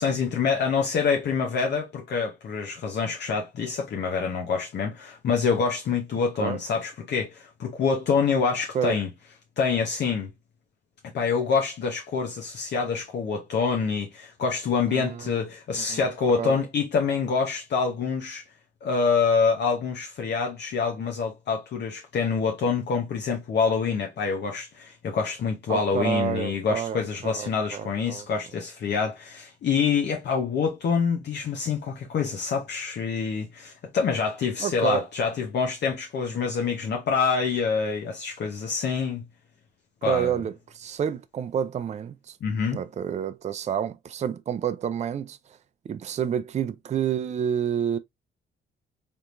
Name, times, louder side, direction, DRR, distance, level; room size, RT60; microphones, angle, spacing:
voice 1, 0.0-9.1 9.6-10.3 11.1-18.4 18.8-39.2 40.0-40.3 42.4-42.8, left 5 dB, 60° left, 0.8 m, -26 dB
voice 2, 14.9-15.4 15.8-16.1 16.3-16.6 25.7-28.3 34.6-35.1 40.0-42.4 42.7-45.6 45.8-48.0, right 8 dB, 35° right, 0.4 m, -29 dB
3.5 x 2.8 x 2.5 m
cardioid pair, 90°, 20 cm